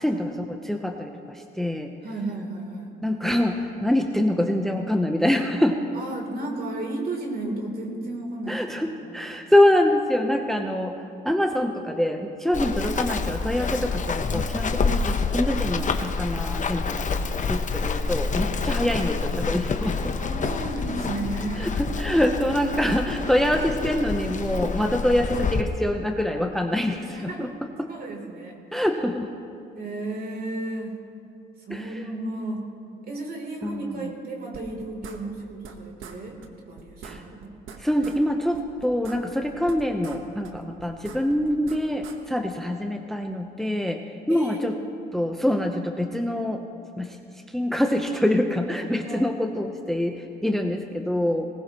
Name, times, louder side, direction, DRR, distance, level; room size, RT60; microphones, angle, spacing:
voice 1, 0.0-1.9 3.0-5.8 8.5-20.1 21.6-27.9 28.7-29.3 31.7-32.0 33.6-34.1 37.0-37.2 37.8-44.0 44.3-44.7 45.1-46.6 47.0-47.2 47.5-51.5, left 1 dB, ahead, 4 dB, 0.8 m, -25 dB
voice 2, 2.0-2.9 5.9-9.3 10.5-10.7 20.1-21.7 26.7-27.5 27.9-28.9 29.8-31.0 31.7-32.7 33.0-36.4 36.7-37.6 44.3-44.7 49.0-49.3, right 2 dB, 50° right, 1 dB, 3.3 m, -33 dB
Run, 12.5-25.6, left 4 dB, 40° left, 0.9 m, -27 dB
sound 1, 34.5-35.7 36.0-36.2 36.4-36.5 36.8-38.2 38.5-40.2 40.4-42.2, right 7 dB, 85° right, 1.3 m, -43 dB
20.0 x 19.0 x 3.0 m, 2.6 s
cardioid pair, 90°, 20 cm